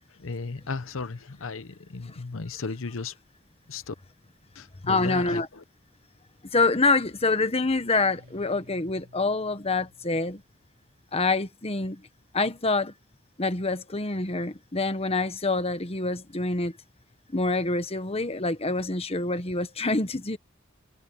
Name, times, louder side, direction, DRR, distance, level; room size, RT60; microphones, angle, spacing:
voice 1, 0.1-3.1 3.7-3.9 4.5-5.6, left 4 dB, 75° left, 0.8 m, -35 dB
voice 2, 4.9-5.5 6.5-10.4 11.1-12.0 12.3-12.9 13.4-16.7 17.3-20.4, left 3 dB, 30° left, 1.2 m, -26 dB
sound 1, 7.9-10.5, equal, 70° right, 3.6 m, -54 dB
head